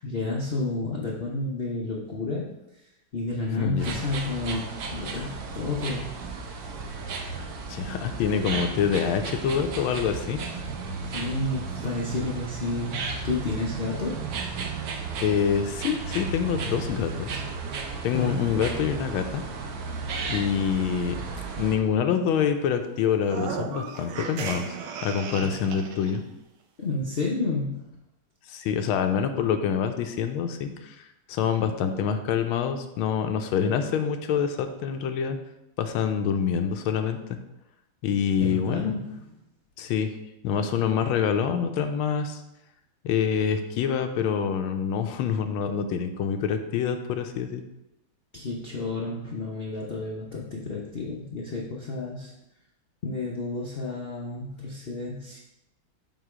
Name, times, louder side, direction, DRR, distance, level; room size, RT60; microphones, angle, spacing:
voice 1, 0.0-2.5 3.1-6.1 11.0-14.2 18.1-18.4 25.3-25.5 26.8-27.9 31.6-31.9 38.4-39.2 48.3-52.3 53.0-55.4, left 2 dB, 65° left, -3 dB, 0.5 m, -31 dB
voice 2, 3.6-4.0 7.7-10.4 15.2-17.4 18.0-19.4 20.3-21.2 21.6-26.2 28.5-31.0 31.3-35.4 35.8-37.4 38.0-39.0 39.8-40.1 40.4-42.4 43.0-47.6, left 7 dB, 90° left, 7 dB, 1.5 m, -26 dB
sound 1, 3.8-21.8, right 4 dB, 65° right, 1.0 m, -34 dB
sound 2, 23.2-26.2, right 5 dB, 90° right, 1.5 m, -35 dB
7.4 x 3.0 x 4.9 m, 0.89 s
omnidirectional pair, 2.2 m